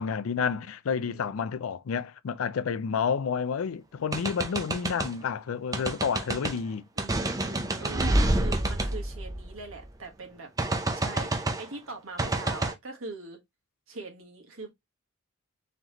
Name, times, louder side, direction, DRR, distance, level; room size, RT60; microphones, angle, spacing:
voice 1, 0.0-6.8, left 6 dB, 70° left, 0.4 m, -30 dB
voice 2, 1.1-1.5 7.0-10.5 10.9-13.4 13.9-14.7, right 3 dB, 70° right, 1.4 m, -42 dB
sound 1, 4.1-5.1 5.7-6.6 7.0-9.9 10.6-11.7 12.2-12.7, right 2 dB, 15° right, 0.5 m, -28 dB
3.9 x 3.1 x 2.9 m
head